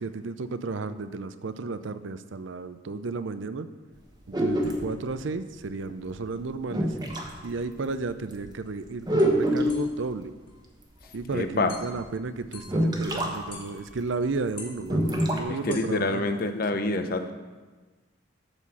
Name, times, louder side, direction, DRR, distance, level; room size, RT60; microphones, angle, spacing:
voice 1, 0.0-3.7 4.3-7.0 7.4-10.3 11.1-16.3, right 3 dB, 65° right, 12 dB, 0.5 m, -33 dB
sound 1, 4.3-4.9 6.1-6.2 6.7-7.3 7.9-8.0 8.3-8.5 9.1-9.9 11.2-11.3 11.9-12.0 12.7-13.3 13.6-13.7 14.0-14.1 14.8-15.4, equal, 20° right, 1.0 m, -25 dB
sound 2, 8.6-8.7 9.2-9.3 9.7-10.0 10.5-10.6 11.0-11.2 11.7-12.1 12.5-13.0 13.5-14.3 14.5-15.9, left 4 dB, 25° left, 1.8 m, -46 dB
voice 2, 11.3-11.7 15.5-17.3, left 2 dB, 45° left, 8 dB, 0.7 m, -27 dB
12.0 x 4.3 x 7.2 m, 1.3 s
head